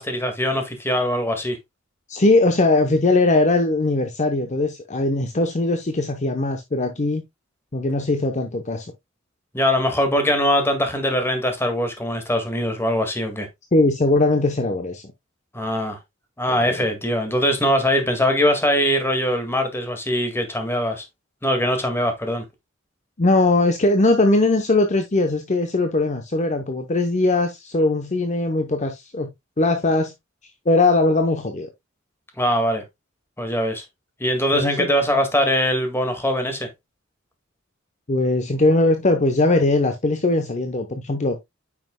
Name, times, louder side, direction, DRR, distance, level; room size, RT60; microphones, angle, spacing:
voice 1, 0.0-1.6 9.5-13.5 15.5-16.0 16.4-21.0 21.4-22.4 32.4-32.8 33.4-33.8 34.2-36.7, equal, 10° left, 1.9 m, -22 dB
voice 2, 2.1-7.2 7.7-8.9 13.7-15.0 16.5-16.9 23.2-29.3 29.6-30.1 30.7-31.7 34.6-34.9 38.1-41.4, left 2 dB, 35° left, 0.8 m, -20 dB
9.2 x 5.9 x 2.2 m
head